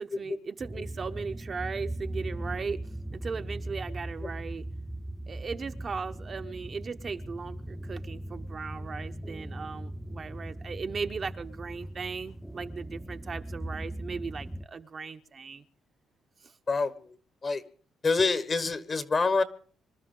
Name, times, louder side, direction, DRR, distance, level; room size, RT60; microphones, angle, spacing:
voice 1, 0.0-2.8 3.1-4.7 5.3-15.6 16.4-16.5, right 5 dB, 40° right, 7 dB, 0.9 m, -37 dB
sound 1, 0.6-14.7, right 1 dB, 5° right, 0.7 m, -39 dB
voice 2, 16.7-17.1 17.4-17.6 18.0-19.4, left 4 dB, 40° left, 12 dB, 1.2 m, -26 dB
26.0 x 12.5 x 3.8 m, 0.44 s
cardioid pair, 90°, 0 cm